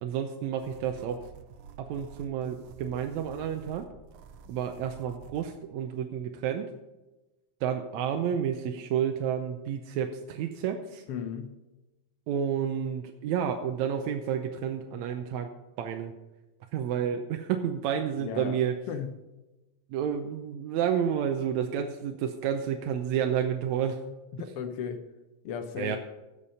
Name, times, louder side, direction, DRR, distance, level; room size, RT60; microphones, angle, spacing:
voice 1, 0.0-1.2 1.8-3.8 4.5-6.7 7.6-11.0 12.3-15.5 15.8-16.1 16.7-18.8 19.9-24.0 25.8-26.0, right 8 dB, 75° right, 5 dB, 1.9 m, -30 dB
sound 1, 0.6-5.5, right 7 dB, 90° right, 2.2 m, -50 dB
voice 2, 11.1-11.6 18.2-18.6 18.9-19.1 24.3-25.0 25.4-26.0, left 7 dB, 70° left, 8 dB, 1.4 m, -35 dB
15.5 x 6.8 x 5.6 m, 1.1 s
omnidirectional pair, 3.5 m